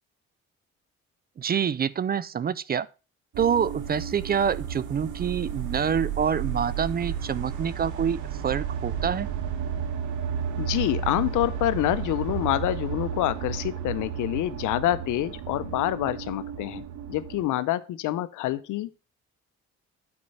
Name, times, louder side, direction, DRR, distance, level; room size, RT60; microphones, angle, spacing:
voice 1, 1.4-2.9 3.4-9.3, right 7 dB, 30° right, 0.4 m, -26 dB
sound 1, 3.3-17.5, right 8 dB, 75° right, 1.2 m, -33 dB
voice 2, 10.6-16.8 17.1-19.1, left 14 dB, 85° left, 0.6 m, -27 dB
8.5 x 4.5 x 5.4 m
cardioid pair, 90°, 30 cm